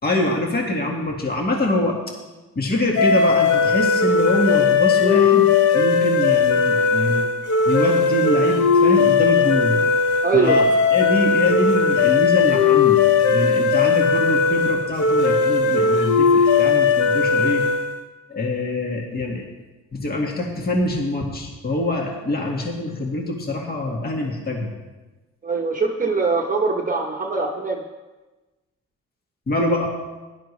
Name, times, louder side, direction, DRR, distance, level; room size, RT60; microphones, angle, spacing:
voice 1, 0.0-2.0 2.6-7.2 7.7-9.8 10.3-17.6 18.3-19.5 19.9-24.7 29.5-29.9, left 2 dB, 30° left, 0 dB, 1.9 m, -24 dB
sound 1, 3.0-18.0, left 5 dB, 75° left, 1.1 m, -18 dB
voice 2, 10.2-10.7 13.7-13.8 25.4-27.8, right 4 dB, 25° right, 0 dB, 1.1 m, -22 dB
16.0 x 11.0 x 3.3 m, 1.2 s
cardioid pair, 90°, 30 cm